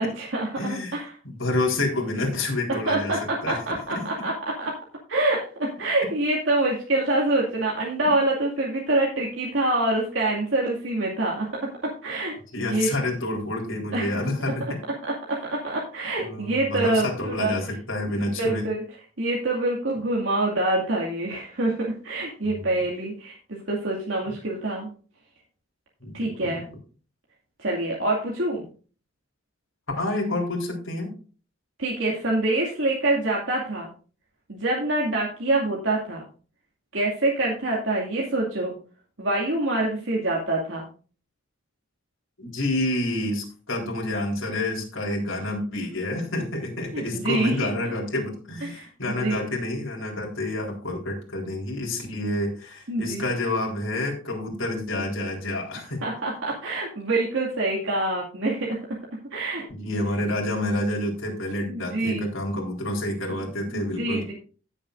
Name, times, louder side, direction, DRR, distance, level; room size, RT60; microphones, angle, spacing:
voice 1, 0.0-1.1 2.9-4.3 4.6-4.8 5.1-12.4 12.7-12.9 13.9-14.3 15.1-17.5 18.1-18.8 19.2-24.9 26.1-26.6 27.6-28.6 31.8-33.9 34.5-36.2 36.9-38.8 39.2-40.8 46.9-47.7 48.6-49.5 52.9-53.2 56.0-59.6 61.7-62.3 63.7-64.3, right 2 dB, 70° right, -3 dB, 2.3 m, -26 dB
voice 2, 0.6-1.0 1.2-3.6 3.9-4.3 12.5-14.8 16.2-18.7 22.4-22.8 26.0-26.6 30.0-31.1 42.4-56.0 59.7-64.3, left 1 dB, 75° left, -1 dB, 3.9 m, -28 dB
17.5 x 7.4 x 2.6 m, 0.39 s
head